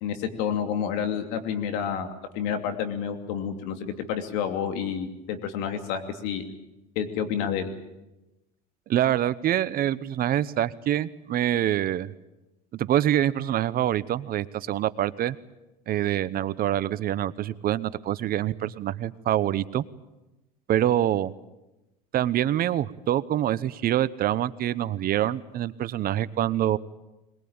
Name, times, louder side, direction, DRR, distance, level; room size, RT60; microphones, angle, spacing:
voice 1, 0.0-6.4 6.9-7.7, left 8 dB, 70° left, 7 dB, 2.9 m, -29 dB
voice 2, 8.9-12.1 12.7-15.4 15.9-19.8 20.7-21.3 22.1-26.8, right 12 dB, 45° right, 17 dB, 1.0 m, -25 dB
22.0 x 21.0 x 8.9 m, 0.99 s
hypercardioid pair, 85°, 21 cm